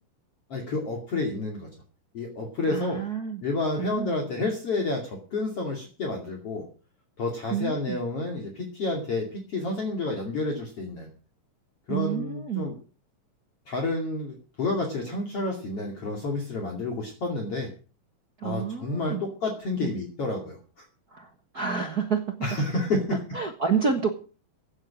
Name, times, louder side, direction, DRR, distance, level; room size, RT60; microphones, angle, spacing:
voice 1, 0.5-1.7 2.1-3.0 3.4-6.7 7.2-11.1 11.9-12.8 13.7-17.7 18.4-20.8 22.4-23.2, left 2 dB, 45° left, 1 dB, 3.3 m, -30 dB
voice 2, 2.7-3.4 3.8-4.1 7.5-8.0 11.9-12.7 18.4-19.2 19.8-19.9 21.1-22.4 23.3-24.1, right 6 dB, 55° right, 4 dB, 1.1 m, -29 dB
16.5 x 8.6 x 6.2 m, 0.38 s
omnidirectional pair, 3.8 m